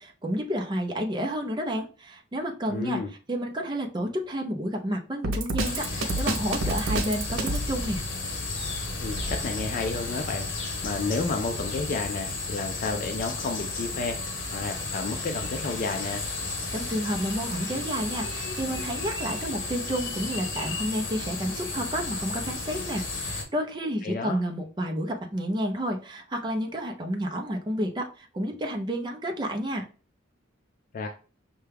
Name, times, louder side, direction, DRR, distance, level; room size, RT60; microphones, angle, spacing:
voice 1, 0.0-3.0 3.3-8.0 16.7-29.9, equal, 25° right, 2 dB, 0.6 m, -30 dB
voice 2, 2.7-3.1 9.0-16.2 24.0-24.4 30.9-31.1, left 3 dB, 45° left, 5 dB, 0.4 m, -31 dB
Drum kit, 5.2-7.7, right 2 dB, 85° right, 0.7 m, -27 dB
sound 1, 5.6-23.4, left 3 dB, 70° left, 1.1 m, -33 dB
5.6 x 2.3 x 3.3 m, 0.37 s
head